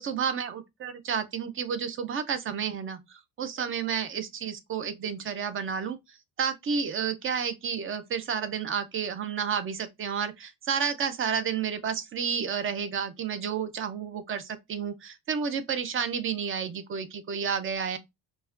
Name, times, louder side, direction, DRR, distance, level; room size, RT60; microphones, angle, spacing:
voice 1, 0.0-18.0, right 7 dB, 35° right, 0.5 m, -31 dB
4.6 x 2.1 x 2.5 m
cardioid pair, 140°, 37 cm